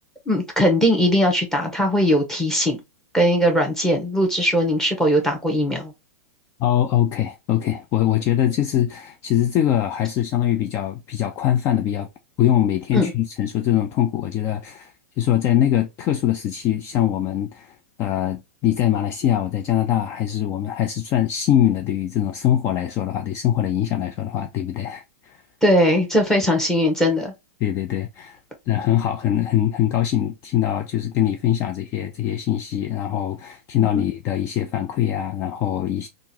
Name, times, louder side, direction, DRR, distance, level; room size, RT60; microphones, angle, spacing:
voice 1, 0.3-2.8 3.1-5.9 12.9-13.1 25.6-27.3 33.8-34.0, equal, 5° left, 1.2 m, -19 dB
voice 2, 6.6-12.1 12.4-25.4 27.6-28.4 28.7-36.1, left 11 dB, 35° left, 0.4 m, -22 dB
3.7 x 2.5 x 2.8 m
hypercardioid pair, 125°, 8 cm